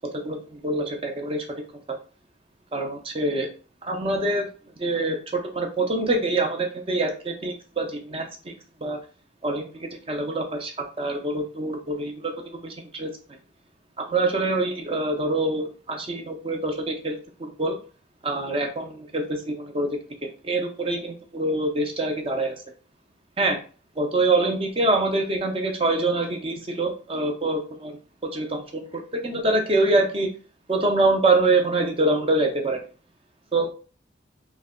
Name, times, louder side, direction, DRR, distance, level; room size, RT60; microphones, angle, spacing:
voice 1, 0.2-1.4 1.9-2.0 2.7-3.5 3.8-4.5 4.8-8.5 8.8-9.0 9.4-10.7 11.0-13.1 14.0-17.8 18.2-19.9 20.2-22.6 23.4-23.6 24.0-28.0 28.2-28.8 29.2-30.3 30.7-32.8 33.5-33.7, right 2 dB, 30° right, 3 dB, 0.6 m, -25 dB
3.2 x 2.1 x 3.6 m, 0.37 s
head